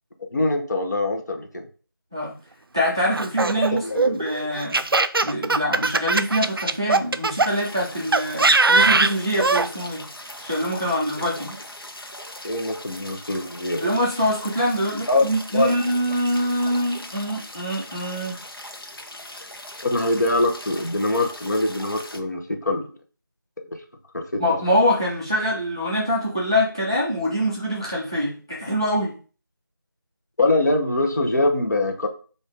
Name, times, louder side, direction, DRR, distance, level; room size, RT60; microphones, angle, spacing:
voice 1, 0.3-1.6 3.4-3.5 3.8-4.1 12.4-13.8 15.1-15.3 15.5-15.7 19.8-22.9 23.7-23.8 24.1-24.6 30.4-32.1, left 2 dB, 50° left, 3 dB, 0.9 m, -23 dB
voice 2, 2.7-4.8 5.2-10.1 10.4-11.6 13.8-18.4 24.4-29.1, equal, 10° right, -7 dB, 0.4 m, -24 dB
Laughter, 3.1-7.5 8.1-9.7, right 3 dB, 90° right, 0.4 m, -20 dB
sound 1, 7.5-22.2, left 1 dB, 90° left, 0.9 m, -40 dB
4.1 x 2.6 x 4.7 m, 0.39 s
figure-of-eight pair, 170°, 12 cm